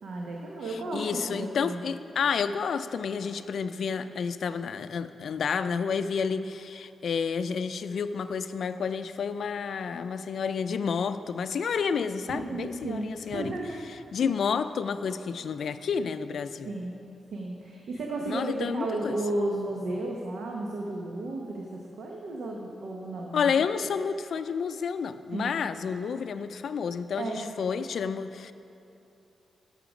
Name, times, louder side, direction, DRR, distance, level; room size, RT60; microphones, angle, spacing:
voice 1, 0.0-1.8 12.3-13.8 16.6-16.9 17.3-23.5 25.3-25.5 27.2-27.5, right 2 dB, 70° right, -1 dB, 0.9 m, -33 dB
voice 2, 0.9-13.6 14.1-16.7 18.3-19.2 23.3-28.5, left 6 dB, 60° left, 11 dB, 0.4 m, -30 dB
12.0 x 6.6 x 5.0 m, 2.7 s
wide cardioid pair, 165°, 0 cm